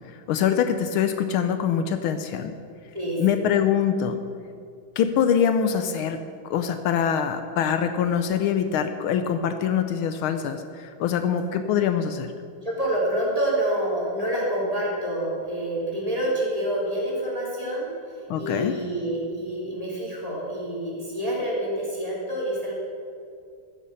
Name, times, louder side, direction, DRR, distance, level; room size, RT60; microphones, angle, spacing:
voice 1, 0.1-2.5 3.2-4.2 5.0-6.2 6.5-12.3 18.3-18.8, left 8 dB, 80° left, 8 dB, 1.5 m, -24 dB
voice 2, 2.9-3.5 11.6-11.7 12.6-17.9 18.3-22.7, right 1 dB, 15° right, -5 dB, 3.4 m, -27 dB
15.0 x 7.5 x 6.8 m, 2.3 s
omnidirectional pair, 2.4 m